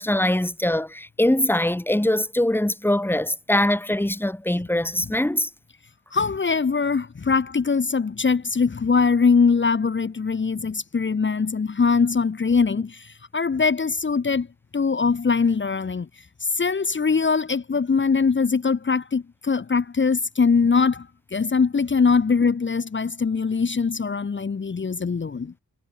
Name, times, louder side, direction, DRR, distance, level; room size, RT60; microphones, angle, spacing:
voice 1, 0.0-5.5, left 1 dB, 5° left, 3.9 m, -22 dB
voice 2, 6.1-14.5 14.7-16.1 16.5-21.1 21.3-25.5, left 5 dB, 30° left, 1.3 m, -22 dB
wide cardioid pair, 175°, 36 cm